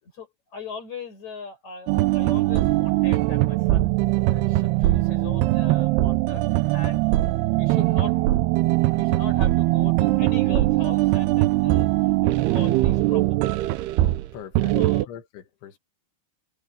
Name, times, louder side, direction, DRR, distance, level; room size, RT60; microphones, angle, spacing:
voice 1, 0.0-3.9 4.3-7.3 7.5-8.2 8.9-13.8 14.7-15.1, left 4 dB, 40° left, 7.8 m, -39 dB
sound 1, 1.9-14.3 14.5-15.0, right 18 dB, 80° right, 2.5 m, -21 dB
voice 2, 14.3-14.7 15.1-15.8, left 9 dB, 85° left, 4.4 m, -41 dB
omnidirectional pair, 5.2 m